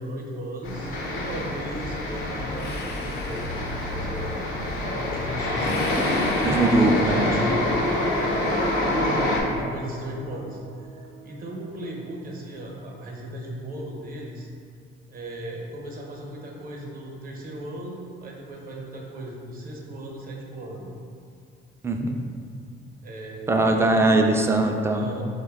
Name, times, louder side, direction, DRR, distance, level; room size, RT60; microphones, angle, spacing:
voice 1, 0.0-3.6 3.9-4.5 4.9-6.0 6.7-7.6 8.8-10.6 10.9-14.5 15.1-20.9 23.0-24.3 24.9-25.2, right 1 dB, 45° right, -1 dB, 0.8 m, -36 dB
sound 1, 0.6-9.4, left 1 dB, 85° left, 0.7 m, -26 dB
sound 2, 2.5-4.2 5.6-7.6, left 4 dB, 55° left, 0.5 m, -41 dB
sound 3, 6.1-12.7, right 4 dB, 75° right, 0.5 m, -39 dB
voice 2, 6.4-7.2 21.8-22.2 23.5-25.1, right 2 dB, 15° right, 3 dB, 0.3 m, -21 dB
4.4 x 2.2 x 3.4 m, 2.3 s
cardioid pair, 90°, 20 cm